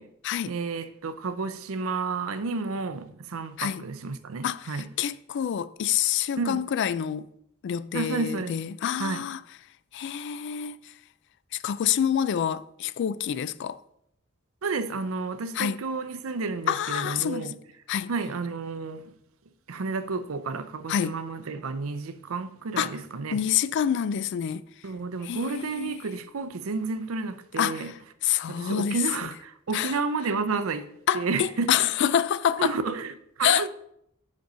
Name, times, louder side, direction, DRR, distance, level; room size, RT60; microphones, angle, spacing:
voice 1, 0.5-4.9 6.4-6.6 7.9-8.5 9.0-9.3 14.6-17.6 18.1-19.1 19.7-23.4 24.8-27.9 28.5-31.9 32.6-33.7, right 4 dB, 70° right, 0.6 m, -31 dB
voice 2, 4.4-7.3 7.6-9.4 9.9-10.8 11.6-13.8 15.6-15.8 16.7-17.5 17.9-18.1 20.9-21.1 22.8-22.9 23.3-24.6 25.2-26.0 27.6-27.9 28.2-29.0 29.7-29.9 31.1-32.7 33.4-33.7, left 9 dB, 55° left, 0.3 m, -27 dB
5.2 x 5.2 x 5.5 m
head